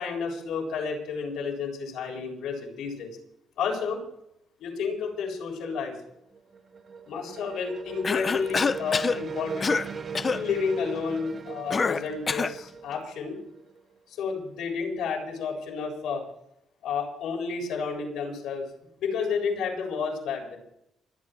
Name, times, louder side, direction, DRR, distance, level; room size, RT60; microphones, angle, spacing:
voice 1, 0.0-3.1 3.6-4.0 4.6-5.9 7.1-9.7 10.3-13.4 14.1-16.2 16.8-18.7 19.0-20.6, left 5 dB, 85° left, 0 dB, 7.4 m, -31 dB
sound 1, 6.2-13.9, right 6 dB, 50° right, 3.4 m, -39 dB
Cough, 8.0-9.2 9.6-9.9 10.1-10.4 11.7-12.6, left 4 dB, 35° left, 0.7 m, -26 dB
27.5 x 9.8 x 4.8 m, 0.77 s
cardioid pair, 90°, 0 cm